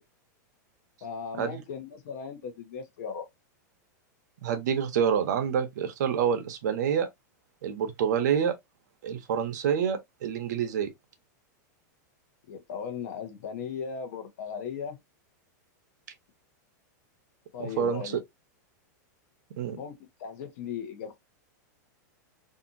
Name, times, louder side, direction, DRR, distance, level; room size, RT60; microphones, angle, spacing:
voice 1, 1.0-3.3 12.5-15.0 17.5-18.2 19.7-19.9 20.2-21.2, left 6 dB, 55° left, 0.9 m, -37 dB
voice 2, 4.4-7.1 7.6-8.5 9.0-10.9 17.6-18.2 19.6-19.8, right 8 dB, 70° right, 0.7 m, -27 dB
2.8 x 2.5 x 2.5 m
supercardioid pair, 165°, 10 cm